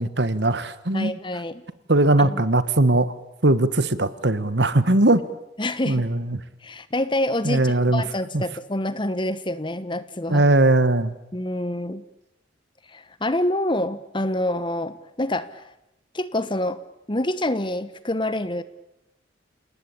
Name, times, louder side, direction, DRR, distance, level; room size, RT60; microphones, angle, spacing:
voice 1, 0.0-1.1 1.9-3.1 3.4-5.2 5.9-6.4 7.4-8.0 8.3-8.4 10.3-11.1, right 2 dB, 60° right, 14 dB, 1.5 m, -19 dB
voice 2, 0.9-1.6 2.2-2.4 5.6-6.1 6.6-10.5 11.3-12.0 12.9-15.6 16.1-16.8 17.1-18.6, left 1 dB, 25° left, 14 dB, 1.2 m, -27 dB
29.0 x 19.0 x 8.6 m, 0.91 s
head